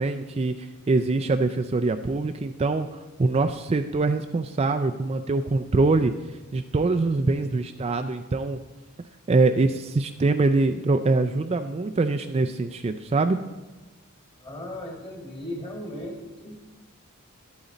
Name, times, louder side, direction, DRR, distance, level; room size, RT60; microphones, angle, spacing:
voice 1, 0.0-6.1 6.5-8.6 9.3-13.4, right 3 dB, 30° right, 6 dB, 0.4 m, -24 dB
voice 2, 14.4-16.5, left 1 dB, 25° left, 1 dB, 2.1 m, -36 dB
11.5 x 8.9 x 4.1 m, 1.2 s
head